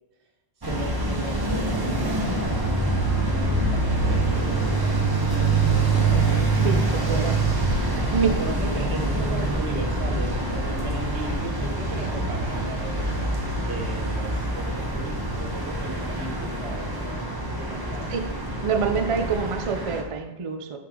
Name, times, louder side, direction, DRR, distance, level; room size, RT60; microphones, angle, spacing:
sound 1, 0.6-20.0, right 2 dB, 20° right, 0.8 m, -25 dB
voice 1, 0.6-5.1 5.8-6.1 6.9-7.3 7.9-13.1 13.5-18.2, right 3 dB, 75° right, 2 dB, 1.3 m, -37 dB
voice 2, 6.6-7.4 7.8-8.3 18.1-18.2 18.5-20.8, right 6 dB, 50° right, 6 dB, 0.4 m, -26 dB
7.4 x 3.6 x 3.7 m, 1.0 s
omnidirectional pair, 1.2 m